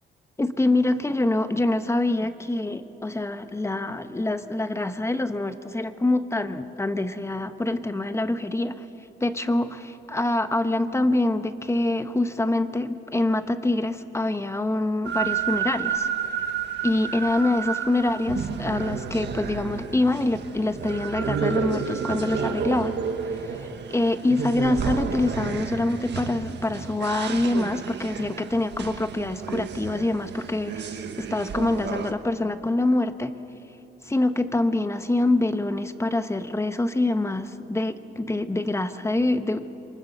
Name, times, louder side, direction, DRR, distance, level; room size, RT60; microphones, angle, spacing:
voice 1, 0.4-8.8 9.2-16.1 16.8-23.0 23.5-33.3 34.1-39.6, left 2 dB, 15° left, 10 dB, 1.2 m, -25 dB
sound 1, 15.0-32.1, right 7 dB, 60° right, 1.6 m, -31 dB
28.0 x 23.0 x 6.8 m, 2.9 s
cardioid pair, 90°, 20 cm